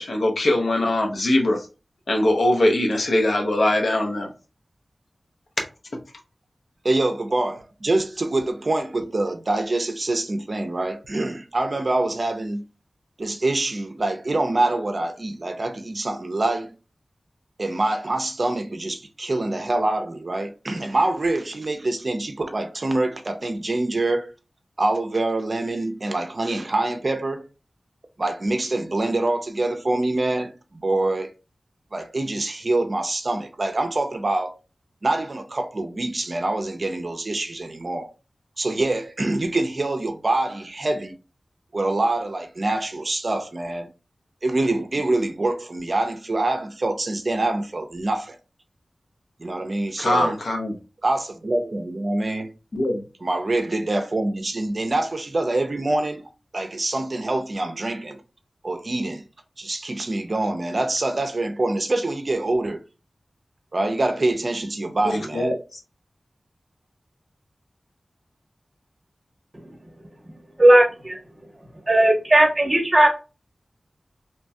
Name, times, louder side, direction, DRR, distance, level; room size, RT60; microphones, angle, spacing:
voice 1, 0.0-1.7 2.1-4.3 50.0-50.7 52.7-53.0 65.0-65.6, left 1 dB, 80° left, 0.7 m, -21 dB
voice 2, 6.8-12.6 13.2-16.7 17.6-24.3 24.8-27.5 28.2-31.3 31.9-34.6 35.0-38.1 38.6-41.1 41.7-43.9 44.4-48.4 49.4-50.3 51.0-52.5 53.2-56.3 56.5-58.2 58.6-59.2 59.6-62.8 63.7-65.5, right 2 dB, 50° right, 0.5 m, -25 dB
voice 3, 70.6-71.2 71.9-73.1, right 1 dB, 30° right, 0.9 m, -16 dB
2.9 x 2.2 x 2.6 m
wide cardioid pair, 85°, 0 cm